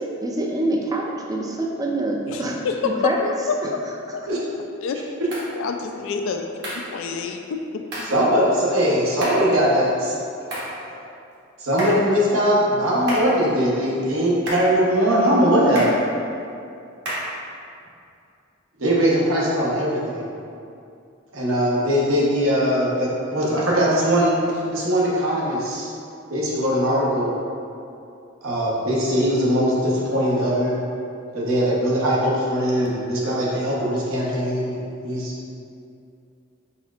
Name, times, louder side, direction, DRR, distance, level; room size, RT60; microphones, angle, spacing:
voice 1, 0.0-3.3 3.6-3.7 4.1-4.2, right 1 dB, 20° right, 0 dB, 0.4 m, -26 dB
sound 1, 5.3-5.5 6.6-6.9 7.9-8.2 9.2-9.5 10.5-10.8 11.8-12.1 13.1-13.4 14.5-14.8 15.7-16.0 17.0-17.4, equal, 55° right, 1.1 m, -30 dB
voice 2, 5.6-7.6, left 5 dB, 65° left, 3 dB, 0.3 m, -28 dB
voice 3, 8.0-10.2 10.9-11.0 11.6-16.0 18.8-20.3 21.3-24.4 24.7-25.9 26.3-27.4 28.4-30.8 31.3-35.3, equal, 75° right, -5 dB, 0.9 m, -21 dB
4.3 x 4.1 x 2.4 m, 2.5 s
head